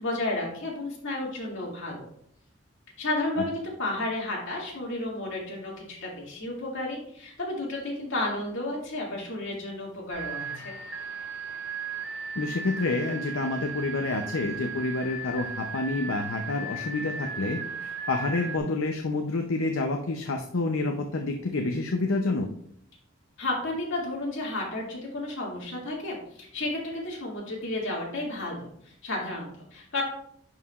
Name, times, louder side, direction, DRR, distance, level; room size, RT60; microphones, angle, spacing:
voice 1, 0.0-2.0 3.0-10.7 23.4-30.0, left 2 dB, 65° left, -3 dB, 2.3 m, -32 dB
sound 1, 10.1-18.6, right 4 dB, 70° right, 1.4 m, -36 dB
voice 2, 12.4-22.5, left 3 dB, 80° left, 4 dB, 0.6 m, -28 dB
10.5 x 4.8 x 2.4 m, 0.67 s
head